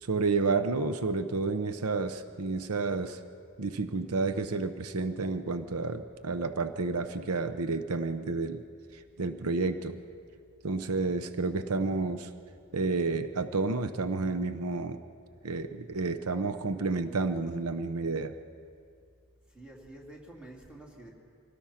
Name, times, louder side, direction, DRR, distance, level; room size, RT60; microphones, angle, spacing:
voice 1, 0.0-3.2 3.6-8.6 8.9-10.0 10.6-12.3 12.7-15.0 15.4-18.3, right 3 dB, 85° right, 9 dB, 0.8 m, -30 dB
voice 2, 19.5-21.1, right 1 dB, 5° right, -2 dB, 3.0 m, -48 dB
25.0 x 18.0 x 5.8 m, 2.4 s
head